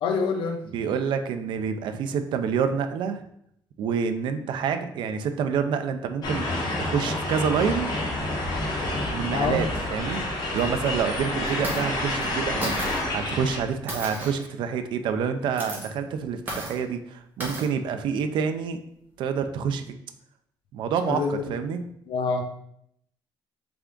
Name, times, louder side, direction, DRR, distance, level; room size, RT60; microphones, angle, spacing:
voice 1, 0.0-0.7 8.7-9.0 9.3-9.6 21.1-21.4 22.1-22.4, left 4 dB, 70° left, 5 dB, 0.5 m, -26 dB
voice 2, 0.7-3.2 3.8-6.5 6.8-7.9 9.1-10.2 10.5-12.7 13.1-18.8 19.2-19.9 20.7-21.8, right 6 dB, 65° right, 8 dB, 0.4 m, -27 dB
sound 1, 6.2-13.6, left 1 dB, 50° left, 1.2 m, -29 dB
sound 2, 10.0-10.2 10.6-10.7 11.5-11.8 12.2-12.3 12.6-13.0 13.9-14.5 15.4-15.9 16.5-16.8 17.4-17.7, right 1 dB, 20° right, 1.2 m, -33 dB
3.5 x 3.4 x 3.7 m, 0.72 s
cardioid pair, 150°, 9 cm